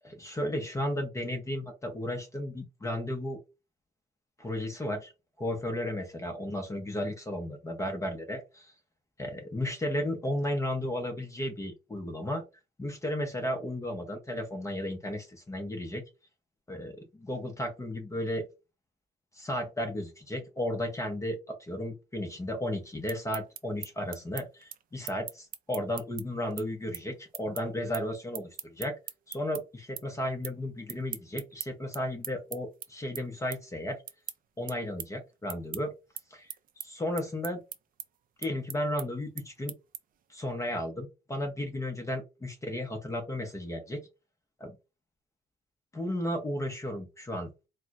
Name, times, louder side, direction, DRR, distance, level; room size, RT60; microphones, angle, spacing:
voice 1, 0.0-3.4 4.4-5.1 5.4-8.7 9.2-12.4 12.8-16.0 16.7-18.5 19.3-29.0 29.3-34.0 34.6-35.9 36.3-36.5 36.8-37.6 38.4-39.7 40.3-44.0 44.6-44.8 45.9-47.5, left 1 dB, 15° left, 4 dB, 0.7 m, -34 dB
sound 1, 22.9-29.6 30.0-30.6 30.9-40.3, right 10 dB, 55° right, 0.5 m, -42 dB
4.3 x 2.1 x 2.4 m, 0.27 s
cardioid pair, 120°, 17 cm